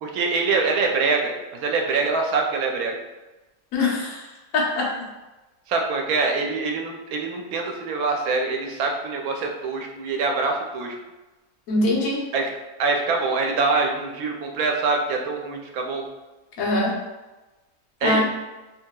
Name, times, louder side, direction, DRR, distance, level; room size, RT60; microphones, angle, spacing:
voice 1, 0.0-3.0 5.7-11.0 12.3-12.5 12.8-16.0 18.0-18.2, right 4 dB, 85° right, 2 dB, 1.0 m, -24 dB
voice 2, 3.7-4.2 4.5-4.9 11.7-12.2 16.6-17.0 18.0-18.2, left 2 dB, 80° left, -3 dB, 1.2 m, -22 dB
3.1 x 2.8 x 2.2 m, 1.1 s
omnidirectional pair, 1.5 m